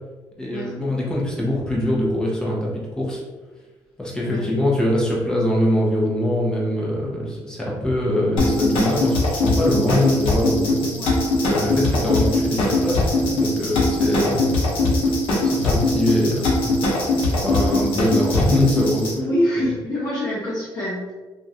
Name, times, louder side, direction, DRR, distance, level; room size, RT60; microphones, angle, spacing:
voice 1, 0.4-3.2 4.0-11.0 11.5-14.5 15.4-16.7 17.2-19.2, left 1 dB, 10° left, -4 dB, 0.9 m, -23 dB
sound 1, 8.4-19.1, left 2 dB, 80° left, 0.8 m, -21 dB
voice 2, 19.1-21.1, left 1 dB, 45° left, -8 dB, 0.8 m, -25 dB
2.9 x 2.5 x 2.7 m, 1.3 s
cardioid pair, 105°, 9 cm